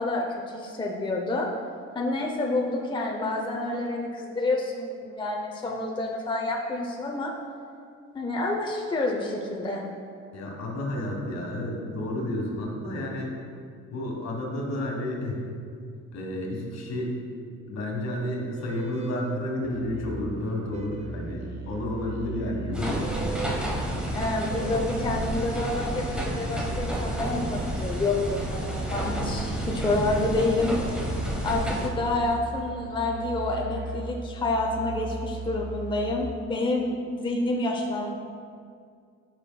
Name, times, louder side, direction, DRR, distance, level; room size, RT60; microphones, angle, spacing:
voice 1, 0.0-1.5 1.9-7.3 8.1-9.8 24.1-31.2 31.4-38.1, left 2 dB, 15° left, 0 dB, 0.6 m, -28 dB
voice 2, 10.3-13.3 13.9-15.4 16.1-17.1 17.7-23.1, left 1 dB, 60° left, -1 dB, 1.5 m, -31 dB
sound 1, 18.5-19.5 20.7-21.3 23.0-23.6 24.5-25.1, right 5 dB, 20° right, 0.5 m, -39 dB
Musical instrument, 19.6-36.1, right 2 dB, 60° right, 1.3 m, -38 dB
sound 2, 22.7-31.9, right 1 dB, 5° right, 1.1 m, -31 dB
8.7 x 5.8 x 2.3 m, 2.3 s
cardioid pair, 90°, 30 cm